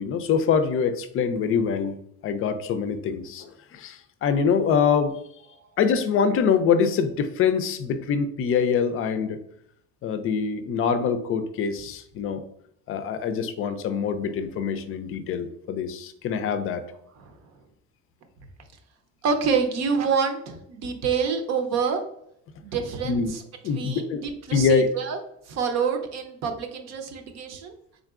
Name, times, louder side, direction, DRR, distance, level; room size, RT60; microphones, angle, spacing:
voice 1, 0.0-2.0 2.2-3.5 3.7-4.0 4.2-5.1 5.8-9.4 10.0-12.4 12.9-16.8 23.1-23.3 23.6-24.2 24.5-24.9, left 6 dB, 40° left, 10 dB, 0.5 m, -24 dB
voice 2, 19.2-22.0 22.6-25.2 25.5-27.7, right 6 dB, 55° right, 6 dB, 0.7 m, -27 dB
3.8 x 3.5 x 2.4 m, 0.73 s
cardioid pair, 115°, 32 cm